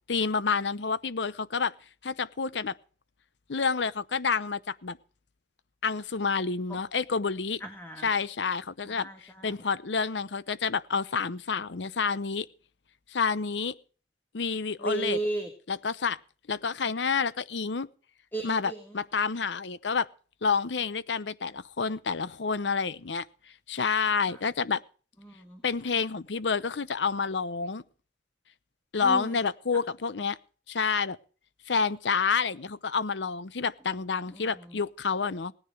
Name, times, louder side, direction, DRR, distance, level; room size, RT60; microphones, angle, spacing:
voice 1, 0.1-1.7 2.0-2.7 3.5-5.0 5.8-7.6 8.0-12.5 13.1-13.7 14.3-15.2 15.7-16.2 16.5-17.9 18.4-20.1 20.4-23.2 23.7-24.8 25.6-27.8 28.9-30.4 30.7-31.2 31.7-35.5, left 5 dB, 80° left, 17 dB, 0.8 m, -29 dB
voice 2, 7.6-8.1 8.9-9.6 14.8-15.5 18.3-19.0 24.3-24.4 25.2-25.6 29.0-29.4 34.3-34.5, right 2 dB, 10° left, 4 dB, 1.9 m, -35 dB
18.5 x 9.9 x 4.9 m, 0.40 s
head